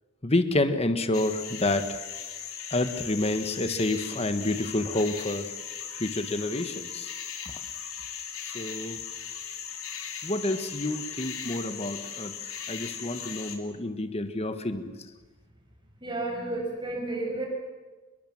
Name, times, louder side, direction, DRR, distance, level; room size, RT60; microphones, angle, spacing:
voice 1, 0.2-1.8 2.7-5.5 6.0-7.1 8.5-9.0 10.2-12.3 12.7-14.8, left 2 dB, 30° left, 9 dB, 1.5 m, -28 dB
sound 1, 1.1-13.6, left 8 dB, 90° left, 3.3 m, -38 dB
voice 2, 16.0-17.5, right 2 dB, 25° right, -1 dB, 6.7 m, -31 dB
27.5 x 21.5 x 7.4 m, 1.3 s
head